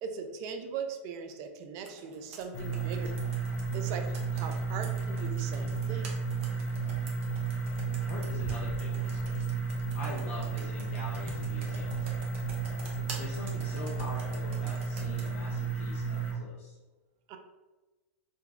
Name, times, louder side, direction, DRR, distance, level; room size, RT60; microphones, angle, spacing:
voice 1, 0.0-3.1 3.7-6.1 17.3-17.4, right 6 dB, 45° right, 5 dB, 0.5 m, -39 dB
Computer keyboard, 1.8-15.3, right 3 dB, 60° right, 0.9 m, -47 dB
sound 1, 2.5-16.3, right 5 dB, 30° left, 0.7 m, -33 dB
voice 2, 8.1-9.5 9.9-12.1 13.0-16.8, left 2 dB, 65° left, -5 dB, 0.8 m, -43 dB
3.9 x 2.3 x 3.3 m, 1.2 s
hypercardioid pair, 110°, 8 cm